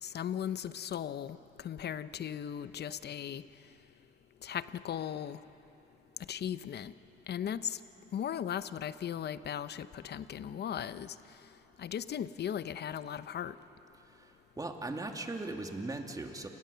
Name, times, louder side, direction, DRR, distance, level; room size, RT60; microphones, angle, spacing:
voice 1, 0.0-3.4 4.4-5.4 6.3-6.9 7.3-7.8 8.1-11.2 11.8-13.6, left 9 dB, 55° left, 14 dB, 0.8 m, -37 dB
voice 2, 14.1-16.5, right 2 dB, 20° right, 3 dB, 2.4 m, -39 dB
28.5 x 20.0 x 6.9 m, 3.0 s
cardioid pair, 90°, 20 cm